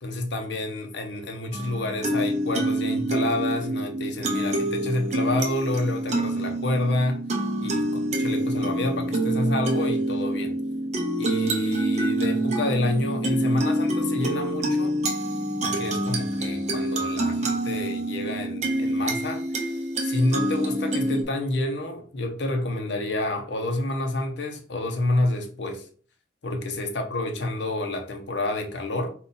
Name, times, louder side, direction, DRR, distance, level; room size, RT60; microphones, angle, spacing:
voice 1, 0.0-7.2 7.6-7.9 8.2-10.5 11.2-15.0 15.6-19.4 20.0-25.9 26.4-29.1, left 2 dB, 60° left, 0.8 m, -28 dB
sound 1, 1.5-21.2, right 1 dB, 35° right, 0.6 m, -26 dB
4.0 x 2.4 x 3.9 m
head